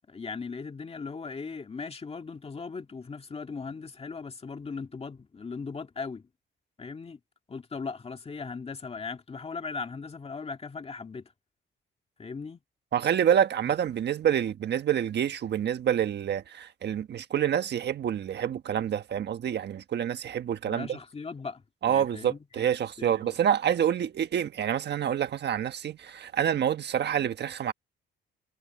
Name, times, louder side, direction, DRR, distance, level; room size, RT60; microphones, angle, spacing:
voice 1, 0.1-6.3 6.8-7.2 7.5-11.3 12.2-12.6 20.7-22.7 23.0-23.4, left 4 dB, 30° left, 2.0 m, -38 dB
voice 2, 12.9-21.0 21.8-27.7, right 9 dB, 60° right, 1.3 m, -27 dB
cardioid pair, 90°, 20 cm